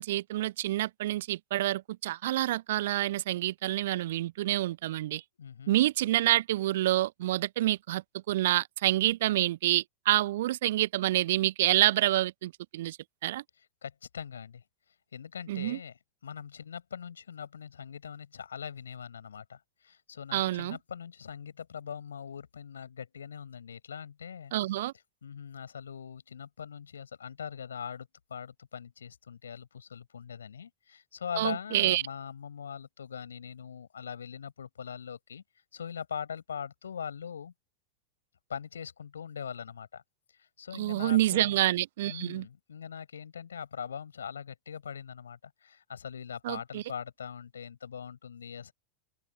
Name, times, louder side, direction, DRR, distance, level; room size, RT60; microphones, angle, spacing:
voice 1, 0.0-5.2 5.7-13.0 13.2-13.4 15.5-15.8 20.3-20.8 24.5-24.9 31.4-32.0 40.7-42.5 46.4-46.8, right 15 dB, 55° right, 0.3 m, -28 dB
voice 2, 5.4-5.7 13.8-14.6 15.1-15.9 16.2-19.6 19.9-24.5 25.2-35.4 35.7-37.5 38.5-40.0 40.6-41.6 42.0-48.7, left 7 dB, 70° left, 6.3 m, -41 dB
open air
figure-of-eight pair, 90°, 0 cm